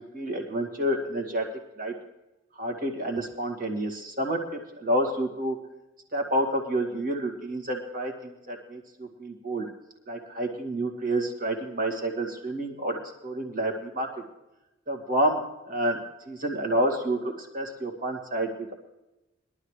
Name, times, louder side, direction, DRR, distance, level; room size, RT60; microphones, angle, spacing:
voice 1, 0.1-1.5 1.8-1.9 2.6-5.6 6.1-9.7 10.1-13.0 13.2-14.1 14.9-15.4 15.7-16.0 16.3-18.7, right 1 dB, 45° right, 2 dB, 2.1 m, -29 dB
21.5 x 12.0 x 3.3 m, 1.0 s
head